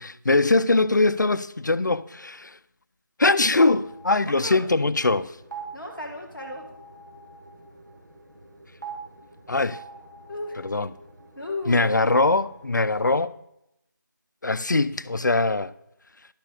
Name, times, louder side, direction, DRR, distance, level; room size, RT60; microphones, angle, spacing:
voice 1, 0.0-2.6 3.2-5.4 9.5-9.8 10.6-10.9 11.7-13.3 14.4-15.7, left 3 dB, 65° left, 0.5 m, -22 dB
sound 1, 3.6-13.3, right 5 dB, 65° right, 1.9 m, -44 dB
voice 2, 4.2-4.6 5.7-6.6 10.3-10.6 11.3-12.0, left 2 dB, 5° right, 1.4 m, -34 dB
12.0 x 4.6 x 6.6 m
figure-of-eight pair, 170°, 11 cm